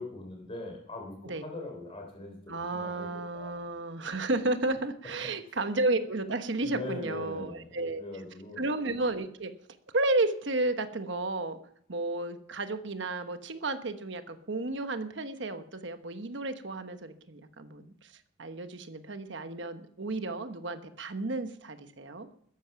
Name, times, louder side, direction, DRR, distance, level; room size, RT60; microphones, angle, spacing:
voice 1, 0.0-2.4 2.7-3.1 3.3-3.7 5.2-5.5 6.6-8.6, left 2 dB, 30° left, 1 dB, 3.3 m, -41 dB
voice 2, 2.5-8.0 8.6-9.5 9.9-11.6 11.9-18.1 18.4-22.3, right 2 dB, 60° right, 9 dB, 1.1 m, -32 dB
13.5 x 11.0 x 5.8 m, 0.65 s
head